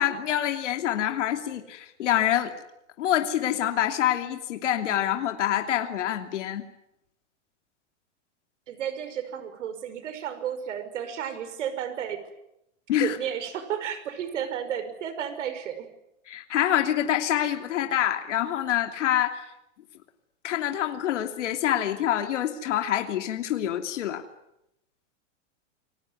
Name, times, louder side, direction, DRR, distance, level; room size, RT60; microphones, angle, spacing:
voice 1, 0.0-2.5 3.0-6.6 12.9-13.2 16.3-19.4 20.4-24.2, left 11 dB, 75° left, 6 dB, 3.0 m, -26 dB
voice 2, 8.7-12.2 13.0-15.9, right 9 dB, 80° right, 12 dB, 5.6 m, -32 dB
28.5 x 19.5 x 9.6 m, 0.84 s
supercardioid pair, 175°, 36 cm